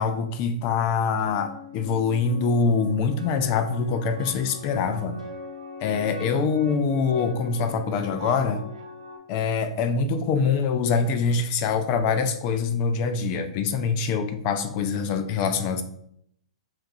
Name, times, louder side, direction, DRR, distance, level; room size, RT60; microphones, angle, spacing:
voice 1, 0.0-5.2 5.8-8.6 9.3-15.8, left 5 dB, 40° left, 9 dB, 0.5 m, -24 dB
sound 1, 1.2-9.2, left 2 dB, 85° right, 1.2 m, -41 dB
7.2 x 2.6 x 2.7 m, 0.72 s
hypercardioid pair, 115°, 4 cm